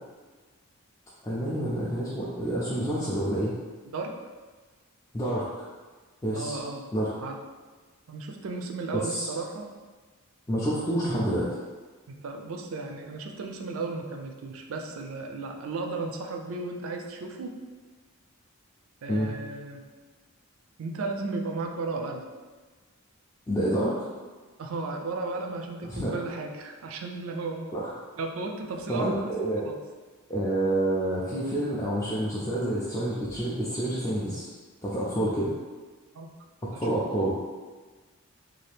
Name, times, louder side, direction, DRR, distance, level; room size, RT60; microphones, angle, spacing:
voice 1, 1.2-3.5 5.1-5.7 6.2-6.6 6.9-7.1 8.9-9.3 10.5-11.5 19.1-19.3 23.5-24.0 25.8-26.1 27.7-27.9 28.9-29.6 30.3-34.5 34.8-35.5 36.6-37.3, right 1 dB, 15° left, -8 dB, 0.3 m, -28 dB
voice 2, 6.3-6.8 7.2-7.4 8.1-9.7 12.2-17.6 19.0-19.9 20.8-22.3 24.6-27.8 28.2-29.3 29.6-29.8 36.1-36.3 36.6-36.8, right 3 dB, 65° right, 3 dB, 0.4 m, -34 dB
2.7 x 2.4 x 3.3 m, 1.4 s
head